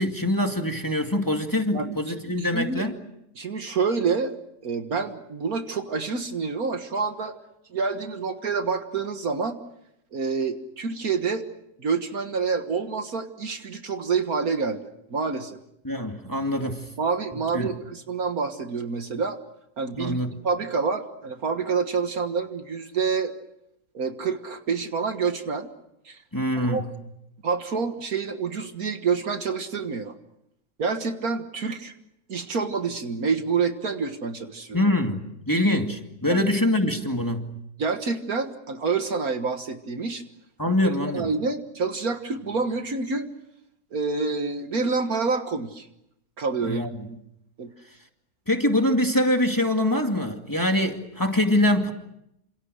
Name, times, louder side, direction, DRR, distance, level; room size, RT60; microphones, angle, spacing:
voice 1, 0.0-3.0 15.8-16.9 17.5-17.7 20.0-20.3 26.3-26.9 34.7-37.6 40.6-41.3 46.6-47.1 48.5-51.9, left 1 dB, 10° left, 4 dB, 2.3 m, -24 dB
voice 2, 2.4-2.8 3.4-4.4 4.6-7.4 7.7-9.6 10.1-11.4 11.8-14.8 15.1-15.6 17.0-19.4 19.8-20.2 20.4-23.3 23.9-25.7 26.1-26.2 26.6-26.8 27.4-30.2 30.8-31.9 32.3-34.8 36.3-36.4 37.8-40.2 41.1-43.3 43.9-45.9 46.4-47.2 47.6-47.7, right 5 dB, 70° right, 7 dB, 2.0 m, -27 dB
29.0 x 27.5 x 6.5 m, 0.81 s
omnidirectional pair, 1.6 m